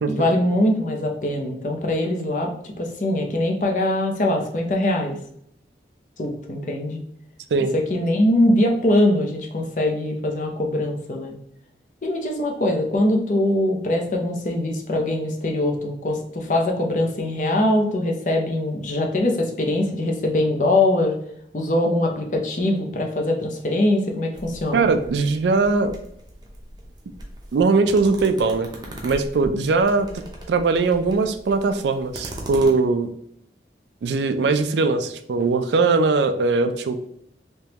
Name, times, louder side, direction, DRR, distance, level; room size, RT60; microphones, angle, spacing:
voice 1, 0.1-5.2 6.2-7.0 7.9-11.3 12.0-21.2 21.5-24.9, left 1 dB, 45° left, 2 dB, 0.5 m, -22 dB
sound 1, 24.3-32.7, right 1 dB, 25° right, 0.6 m, -39 dB
voice 2, 24.7-25.9 27.5-28.7 29.0-30.1 30.5-33.1 34.0-36.9, right 3 dB, 80° right, 8 dB, 0.4 m, -20 dB
3.5 x 3.0 x 2.8 m, 0.72 s
head